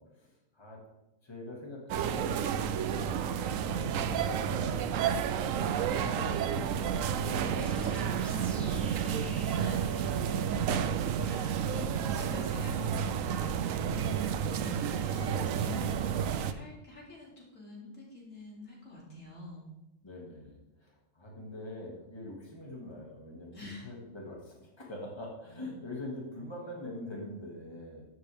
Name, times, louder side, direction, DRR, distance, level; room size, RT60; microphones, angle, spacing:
voice 1, 0.2-0.8 1.2-2.5 3.4-4.9 6.0-9.1 10.5-11.0 11.3-11.4 11.8-12.1 14.0-14.3 15.2-15.7 20.0-28.0, left 1 dB, 20° left, -2 dB, 2.1 m, -44 dB
sound 1, 1.9-16.5, right 8 dB, 90° right, 1.0 m, -31 dB
sound 2, 7.6-11.1, equal, ahead, 2.4 m, -50 dB
voice 2, 9.5-10.0 11.2-19.6 23.5-23.9, left 2 dB, 80° left, -4 dB, 3.3 m, -47 dB
13.0 x 7.9 x 3.5 m, 0.97 s
omnidirectional pair, 1.3 m